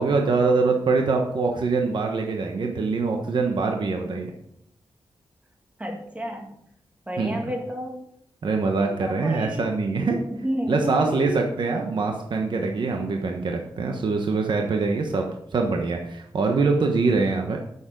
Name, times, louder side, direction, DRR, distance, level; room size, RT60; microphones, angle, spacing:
voice 1, 0.0-4.3 7.2-7.4 8.4-10.2 10.7-15.3 15.5-17.6, right 4 dB, 60° right, 2 dB, 1.1 m, -24 dB
voice 2, 5.8-6.5 7.1-8.0 8.8-9.6 10.3-11.5, equal, 15° right, 1 dB, 2.0 m, -31 dB
8.7 x 7.1 x 5.1 m, 0.72 s
wide cardioid pair, 95°, 9 cm